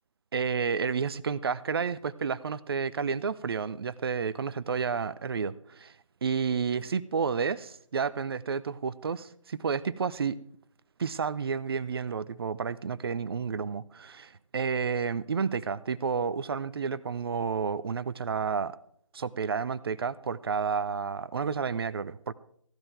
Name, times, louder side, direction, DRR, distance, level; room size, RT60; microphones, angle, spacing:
voice 1, 0.3-6.0 6.2-10.4 11.0-18.8 19.1-22.3, right 6 dB, 45° right, 16 dB, 0.7 m, -31 dB
15.5 x 11.0 x 4.6 m, 0.65 s
figure-of-eight pair, 150°, 17 cm